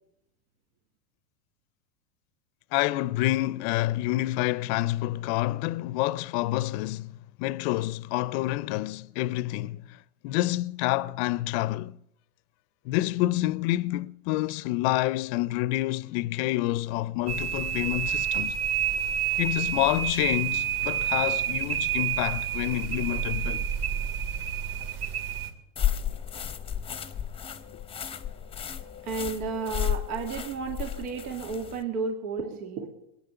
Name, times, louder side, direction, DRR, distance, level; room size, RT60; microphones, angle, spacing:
voice 1, 2.7-10.0 10.2-12.0 12.8-18.6 19.4-23.6, left 17 dB, 50° left, 0.5 m, -28 dB
sound 1, 17.3-25.5, right 9 dB, 55° right, 2.8 m, -29 dB
sound 2, 25.8-31.8, left 10 dB, 15° left, 0.7 m, -33 dB
voice 2, 29.0-32.9, right 4 dB, 80° right, 2.3 m, -32 dB
21.0 x 9.6 x 6.9 m
supercardioid pair, 130°, 43 cm